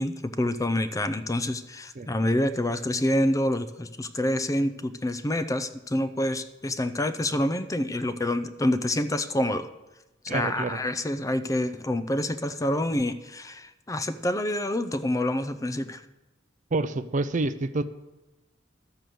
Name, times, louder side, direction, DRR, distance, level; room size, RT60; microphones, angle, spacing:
voice 1, 0.0-9.7 10.2-16.0, left 1 dB, 15° left, 12 dB, 0.5 m, -27 dB
voice 2, 10.3-10.8 16.7-17.9, right 2 dB, 40° right, 13 dB, 0.5 m, -28 dB
12.5 x 6.8 x 7.7 m, 1.0 s
head